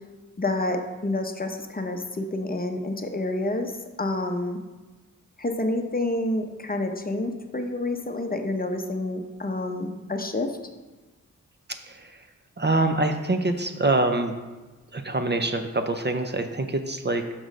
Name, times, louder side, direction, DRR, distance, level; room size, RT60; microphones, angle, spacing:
voice 1, 0.4-3.7 4.0-4.6 5.4-10.5, left 2 dB, 30° left, 5 dB, 0.7 m, -28 dB
voice 2, 11.9-12.2 12.6-14.3 14.9-17.2, right 2 dB, 35° right, 6 dB, 0.5 m, -25 dB
6.2 x 6.1 x 5.1 m, 1.2 s
wide cardioid pair, 90°, 32 cm